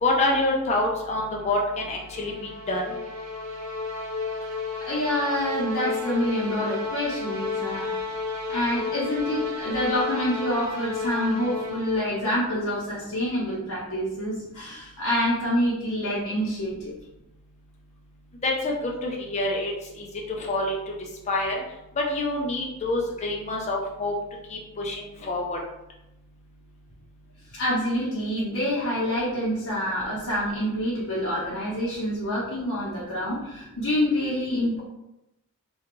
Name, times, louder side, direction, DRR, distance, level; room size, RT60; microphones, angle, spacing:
voice 1, 0.0-2.9 18.4-20.7 21.3-21.6 22.0-24.1 24.5-25.6, left 2 dB, 30° left, -1 dB, 0.4 m, -27 dB
sound 1, 1.7-12.3, left 4 dB, 80° right, 0.7 m, -32 dB
voice 2, 4.8-7.9 8.5-16.9 27.5-34.8, equal, 70° left, -8 dB, 0.7 m, -27 dB
2.5 x 2.3 x 3.0 m, 0.91 s
head